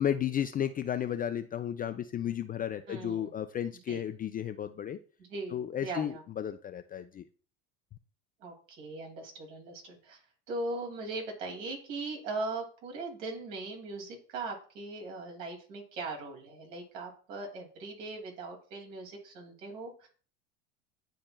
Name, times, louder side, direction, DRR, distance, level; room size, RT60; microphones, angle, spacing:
voice 1, 0.0-5.0 5.5-7.2, left 10 dB, 25° left, 8 dB, 0.4 m, -33 dB
voice 2, 2.9-3.3 3.9-4.0 5.3-6.2 8.4-10.2 10.5-20.1, right 3 dB, 70° right, 1 dB, 2.6 m, -39 dB
10.5 x 4.3 x 2.3 m, 0.40 s
hypercardioid pair, 75°, 40 cm